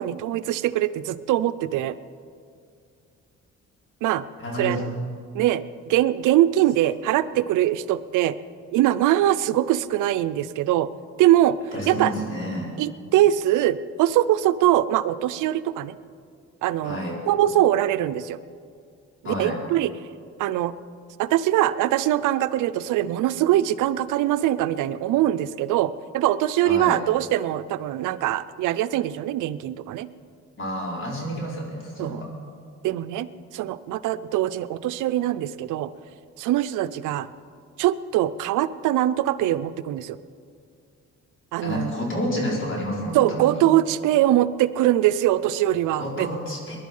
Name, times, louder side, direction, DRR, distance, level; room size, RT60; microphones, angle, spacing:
voice 1, 0.0-2.0 4.0-4.2 4.6-4.9 5.3-8.4 8.7-10.9 11.2-11.6 11.9-12.1 12.8-15.9 16.6-17.0 17.3-18.4 19.4-19.9 20.4-20.7 21.2-30.1 32.0-32.2 32.8-33.3 33.5-35.9 36.4-37.3 37.8-40.2 41.5-41.9 43.1-46.3, right 13 dB, 90° right, 14 dB, 0.6 m, -22 dB
voice 2, 4.4-4.8 11.7-12.8 16.8-17.2 19.2-19.6 26.6-27.0 30.6-32.4 41.6-43.6 46.0-46.8, equal, 40° left, -3 dB, 4.8 m, -30 dB
20.5 x 11.5 x 5.5 m, 2.3 s
cardioid pair, 90°, 30 cm